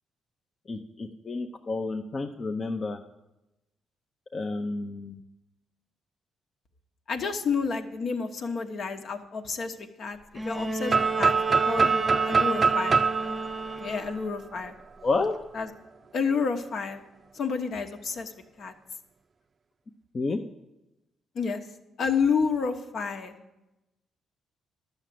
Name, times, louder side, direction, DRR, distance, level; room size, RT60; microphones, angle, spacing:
voice 1, 0.7-3.0 4.3-5.2 15.0-15.3 20.1-20.4, left 3 dB, 35° left, 3 dB, 0.7 m, -30 dB
voice 2, 7.1-13.0 13.8-14.7 15.5-15.7 16.1-17.0 17.3-18.3 18.6-18.7 21.3-21.6 22.0-23.4, left 5 dB, 60° left, 6 dB, 1.1 m, -30 dB
Bowed string instrument, 10.3-14.4 15.6-15.7, right 3 dB, 10° right, 0.9 m, -33 dB
sound 1, 10.9-14.7, right 5 dB, 40° right, 0.5 m, -24 dB
11.5 x 6.6 x 7.6 m, 0.96 s
cardioid pair, 90°, 0 cm